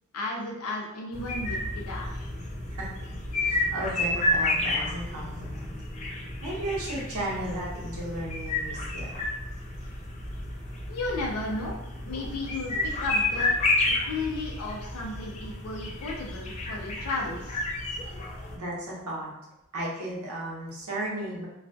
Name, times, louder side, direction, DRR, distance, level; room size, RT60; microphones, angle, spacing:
voice 1, 0.1-2.3 10.9-11.7 12.0-13.5 13.8-17.7, left 2 dB, 90° left, -2 dB, 0.5 m, -34 dB
sound 1, 1.1-18.5, left 2 dB, 30° left, 0.4 m, -31 dB
voice 2, 3.3-5.7 6.4-9.2 17.9-18.2 18.5-19.3 19.7-21.5, right 1 dB, 85° right, -5 dB, 0.7 m, -35 dB
2.3 x 2.2 x 2.5 m, 0.88 s
head